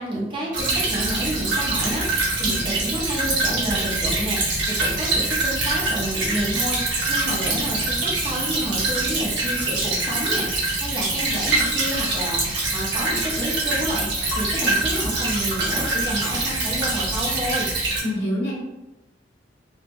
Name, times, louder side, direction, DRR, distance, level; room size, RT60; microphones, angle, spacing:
voice 1, 0.0-17.7, right 1 dB, 30° right, -4 dB, 0.8 m, -30 dB
Stream / Trickle dribble, 0.5-18.0, right 2 dB, 80° right, 1.0 m, -24 dB
voice 2, 18.0-18.5, left 1 dB, 80° left, -5 dB, 1.2 m, -26 dB
3.5 x 2.2 x 2.9 m, 1.0 s
head